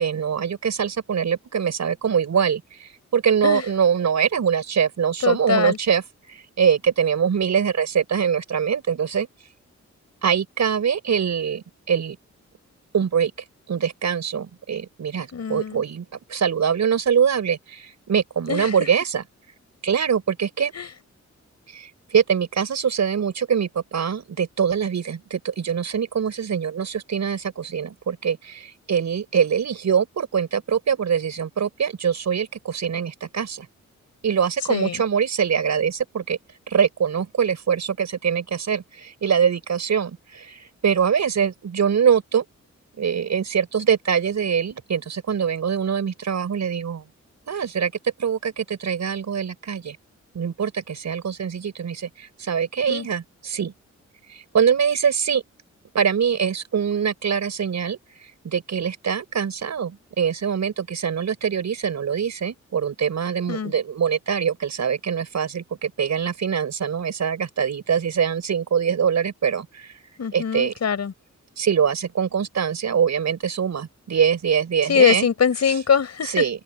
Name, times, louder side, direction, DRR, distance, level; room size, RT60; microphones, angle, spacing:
voice 1, 0.0-9.3 10.2-12.2 12.9-13.3 13.7-19.2 19.8-20.7 21.7-33.7 34.2-36.4 36.7-42.4 43.0-47.0 47.5-47.9 48.2-50.0 50.3-53.7 54.3-55.4 55.9-69.9 70.3-70.7 71.6-75.3 76.2-76.6, right 7 dB, 70° right, 5.5 m, -23 dB
voice 2, 5.2-5.8 15.3-15.8 18.5-18.7 20.7-20.9 34.7-35.0 52.9-53.1 63.5-63.7 70.2-71.1 74.9-76.4, left 7 dB, 65° left, 5.0 m, -22 dB
wide cardioid pair, 125°, 29 cm